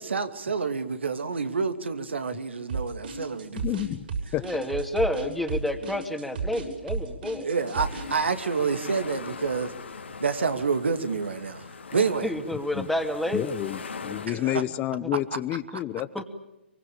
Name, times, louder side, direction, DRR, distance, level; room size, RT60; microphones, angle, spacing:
voice 1, 0.0-3.6 7.4-9.7 10.2-12.3 14.3-14.6, right 5 dB, 75° right, 9 dB, 2.5 m, -28 dB
sound 1, 2.7-8.1, right 5 dB, 55° right, 7.1 m, -32 dB
voice 2, 3.6-4.5 12.7-12.9 13.3-16.2, left 14 dB, 25° left, 14 dB, 0.9 m, -30 dB
voice 3, 4.4-7.5 11.9-13.5 16.1-16.2, left 1 dB, ahead, 5 dB, 2.5 m, -29 dB
sound 2, 7.5-14.3, left 5 dB, 75° left, 3.4 m, -41 dB
24.5 x 24.0 x 8.8 m, 0.91 s
figure-of-eight pair, 125°, 6 cm